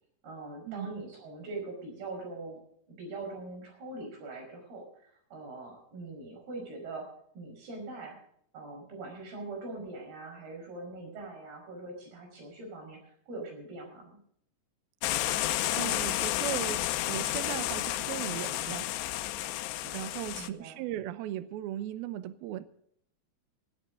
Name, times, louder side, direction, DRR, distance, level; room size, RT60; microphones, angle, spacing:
voice 1, 0.2-2.6 2.9-7.1 7.3-8.2 8.5-14.2 20.3-20.8, right 2 dB, 55° right, 3 dB, 7.0 m, -42 dB
sound 1, 15.0-20.5, left 15 dB, 80° left, 2.6 m, -31 dB
voice 2, 15.3-18.9 19.8-22.6, right 12 dB, 85° right, 13 dB, 2.1 m, -38 dB
17.5 x 14.5 x 3.8 m, 0.68 s
omnidirectional pair, 5.5 m